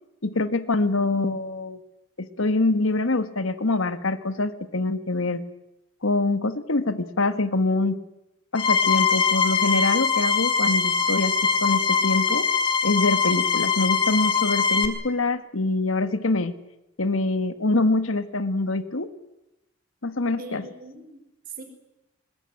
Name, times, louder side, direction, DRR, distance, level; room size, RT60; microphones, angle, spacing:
voice 1, 0.2-1.8 2.2-5.4 6.0-8.0 8.5-11.4 11.6-12.5 12.8-16.6 17.0-19.1 20.0-20.6, left 2 dB, 80° left, 11 dB, 1.5 m, -24 dB
sound 1, 8.6-14.9, left 5 dB, 25° left, 2.4 m, -22 dB
voice 2, 20.4-21.6, right 3 dB, 45° right, 5 dB, 5.0 m, -41 dB
21.0 x 20.0 x 9.8 m, 0.93 s
head